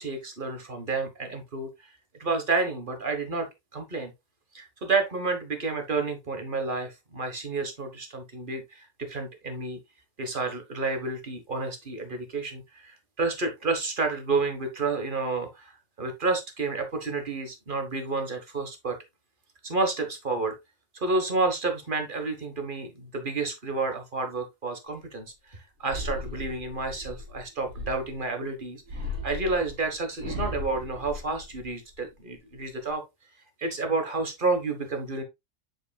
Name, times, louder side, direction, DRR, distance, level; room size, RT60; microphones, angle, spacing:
voice 1, 0.0-1.7 2.2-3.5 3.7-4.1 4.5-9.8 10.2-19.0 19.6-20.6 20.9-28.8 29.2-33.0 33.6-35.2, right 3 dB, 35° right, 1.2 m, -30 dB
sound 1, 25.8-28.3 28.9-31.9 32.3-32.9, left 2 dB, 55° right, 2.9 m, -37 dB
7.5 x 6.2 x 2.3 m
omnidirectional pair, 1.8 m